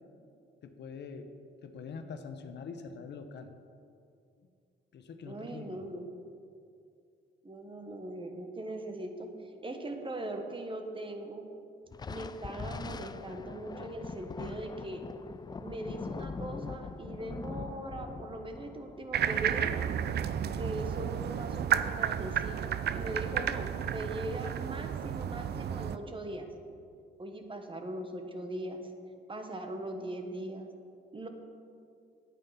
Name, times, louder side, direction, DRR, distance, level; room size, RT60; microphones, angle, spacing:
voice 1, 0.6-1.3 1.6-3.5 4.9-5.7, left 5 dB, 60° left, 7 dB, 0.9 m, -44 dB
voice 2, 5.2-6.1 7.4-11.5 12.1-15.0 15.6-19.7 20.5-26.5 27.2-28.9 29.3-30.7 31.1-31.3, right 1 dB, 25° right, 5 dB, 1.2 m, -40 dB
Thunder, 11.9-20.7, left 4 dB, 20° left, 0.4 m, -42 dB
sound 1, 19.1-26.0, right 9 dB, 55° right, 0.5 m, -32 dB
9.2 x 8.7 x 5.7 m, 2.4 s
cardioid pair, 90°, 20 cm